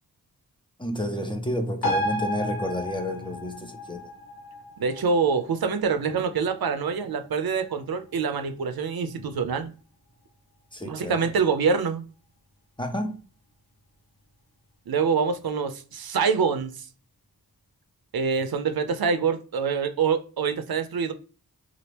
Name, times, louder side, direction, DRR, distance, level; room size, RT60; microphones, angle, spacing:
voice 1, 0.8-4.1 10.7-11.3 12.8-13.2, left 1 dB, 15° left, 0.6 m, -30 dB
sound 1, 1.8-8.8 9.1-9.2, equal, 75° left, 1.0 m, -34 dB
voice 2, 4.8-9.7 10.9-12.0 14.9-16.7 18.1-21.1, right 5 dB, 75° right, 0.6 m, -25 dB
2.9 x 2.5 x 3.3 m
wide cardioid pair, 60°, 37 cm